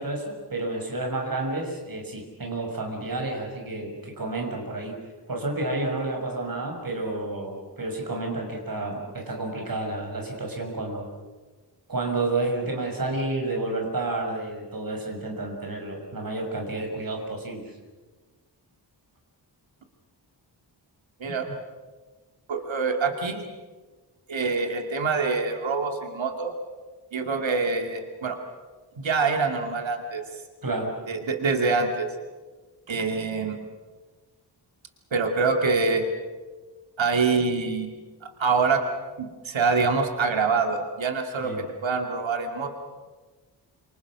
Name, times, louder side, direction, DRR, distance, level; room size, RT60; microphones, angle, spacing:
voice 1, 0.0-5.0 5.3-11.1 11.9-17.6 21.2-21.5 30.6-30.9 41.4-41.6, right 2 dB, 50° right, 1 dB, 6.4 m, -30 dB
voice 2, 22.5-23.4 24.3-26.5 27.1-28.4 29.0-30.2 31.1-32.1 32.9-33.6 35.1-36.0 37.0-38.0 38.2-38.8 39.2-42.7, right 4 dB, 90° right, 4 dB, 2.7 m, -25 dB
29.5 x 27.5 x 6.3 m, 1.3 s
wide cardioid pair, 145°, 45 cm